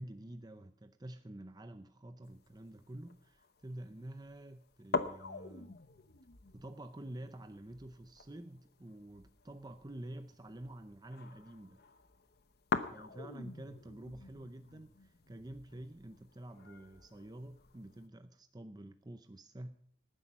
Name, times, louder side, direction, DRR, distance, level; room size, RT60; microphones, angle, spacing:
voice 1, 0.0-5.8 6.5-11.8 12.9-19.7, right 1 dB, 20° right, 9 dB, 0.6 m, -49 dB
sound 1, 2.2-18.1, left 4 dB, 50° left, 0.9 m, -44 dB
19.0 x 10.0 x 5.4 m, 0.63 s
head